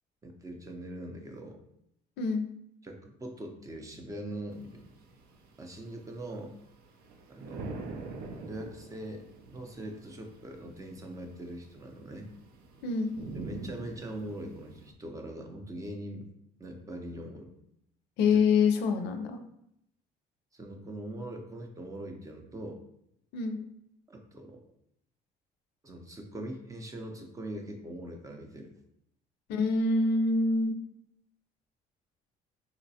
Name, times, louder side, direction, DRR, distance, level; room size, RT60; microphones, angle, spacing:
voice 1, 0.2-1.6 2.8-4.8 5.6-6.5 7.3-7.9 8.5-12.3 13.3-16.3 16.6-17.5 18.3-18.4 20.5-22.8 24.1-24.6 25.8-28.7, right 1 dB, 20° right, 3 dB, 0.5 m, -42 dB
sound 1, 4.5-14.9, right 3 dB, 65° right, 0.5 m, -46 dB
voice 2, 12.8-13.1 18.2-19.4 23.3-23.6 29.5-30.8, left 4 dB, 85° left, 6 dB, 0.4 m, -26 dB
3.9 x 2.2 x 2.7 m, 0.75 s
cardioid pair, 110°, 17 cm